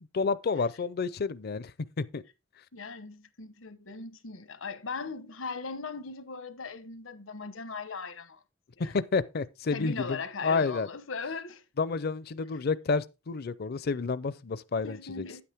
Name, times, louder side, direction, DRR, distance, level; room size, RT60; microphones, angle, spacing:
voice 1, 0.1-1.7 2.0-2.2 8.8-10.9 11.8-15.3, left 4 dB, 50° left, 0.5 m, -30 dB
voice 2, 2.7-8.4 8.8-8.9 9.7-11.6 14.8-15.4, left 4 dB, 85° left, 1.2 m, -39 dB
9.8 x 8.5 x 3.5 m
head